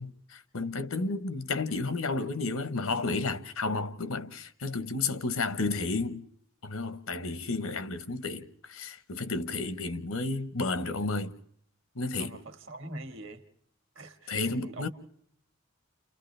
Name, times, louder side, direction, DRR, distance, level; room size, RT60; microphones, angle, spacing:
voice 1, 0.0-6.2 6.6-11.4 12.0-12.4 14.3-14.9, left 3 dB, 90° left, 1.1 m, -32 dB
voice 2, 12.2-13.4 13.9-14.9, right 1 dB, 65° right, 1.7 m, -43 dB
30.0 x 29.5 x 3.3 m
head